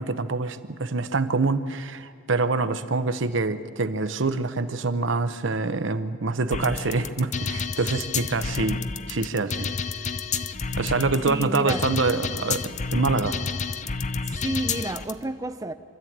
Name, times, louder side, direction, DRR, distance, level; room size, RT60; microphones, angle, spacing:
voice 1, 0.0-8.8 9.1-9.7 10.8-13.4, right 3 dB, 70° right, 0.8 m, -25 dB
sound 1, 6.5-15.1, left 5 dB, 40° left, 0.6 m, -30 dB
voice 2, 11.2-11.9 14.2-15.7, right 2 dB, 20° right, 0.5 m, -31 dB
25.5 x 12.5 x 8.7 m
head